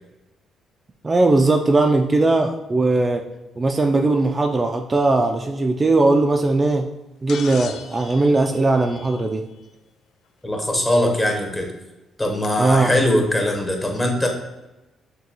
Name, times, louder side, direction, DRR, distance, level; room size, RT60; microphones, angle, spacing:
voice 1, 1.0-3.2 3.6-6.9 7.2-9.4 12.6-13.0, right 2 dB, 25° right, 3 dB, 0.3 m, -19 dB
sound 1, 7.3-9.6 11.2-11.3 12.4-12.5, left 7 dB, 75° left, 0.3 m, -39 dB
voice 2, 10.4-11.7 12.2-14.3, left 1 dB, 20° left, 2 dB, 0.9 m, -21 dB
6.4 x 2.3 x 2.8 m, 0.99 s
cardioid pair, 90°, 0 cm